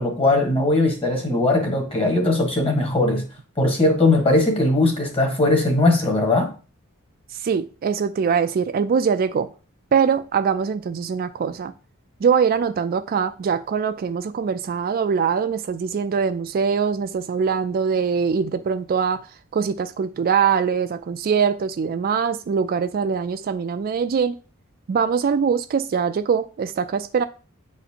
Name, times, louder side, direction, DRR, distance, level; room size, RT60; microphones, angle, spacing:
voice 1, 0.0-3.2 3.6-6.5, left 2 dB, 25° left, 1.5 m, -19 dB
voice 2, 7.4-9.5 9.9-11.7 12.2-19.3 19.5-24.3 24.9-27.2, right 6 dB, 45° right, 0.3 m, -22 dB
8.9 x 4.2 x 2.8 m
head